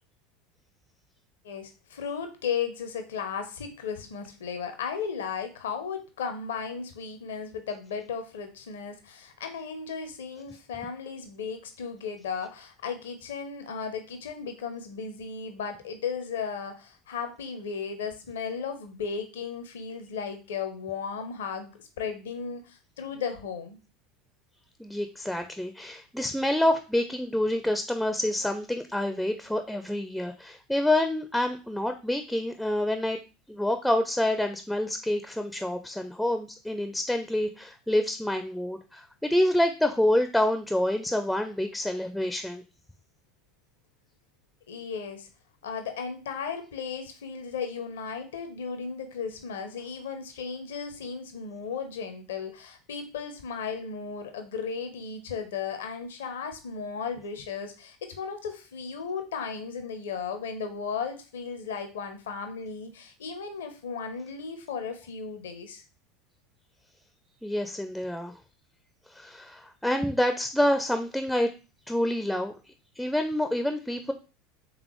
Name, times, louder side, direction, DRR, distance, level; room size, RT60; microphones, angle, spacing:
voice 1, 1.4-23.8 44.7-45.3 45.6-65.8, left 6 dB, 70° left, 7 dB, 0.6 m, -35 dB
voice 2, 24.8-33.2 33.5-42.6 67.4-68.4 69.1-71.5 71.9-72.5 73.0-74.1, left 1 dB, ahead, 7 dB, 0.4 m, -27 dB
3.9 x 3.4 x 3.0 m, 0.33 s
figure-of-eight pair, 75°, 0 cm